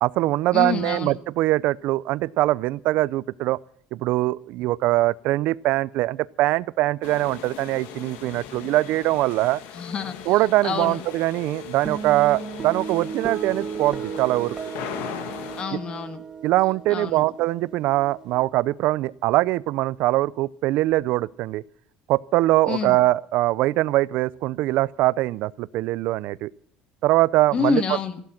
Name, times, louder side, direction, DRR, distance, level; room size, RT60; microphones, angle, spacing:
voice 1, 0.0-3.6 3.9-9.6 10.3-14.5 15.7-15.8 16.4-21.6 22.1-26.5 27.0-27.8, right 17 dB, 65° right, 0.5 m, -22 dB
voice 2, 0.5-1.1 9.7-10.2 10.6-11.0 15.6-16.2 16.9-17.2 22.7-23.0 27.5-28.2, left 6 dB, 30° left, 1.6 m, -27 dB
sound 1, 7.0-15.6, left 9 dB, 75° left, 1.9 m, -39 dB
sound 2, 11.9-18.4, right 6 dB, 20° right, 1.9 m, -35 dB
15.0 x 11.5 x 5.9 m
cardioid pair, 145°, 3 cm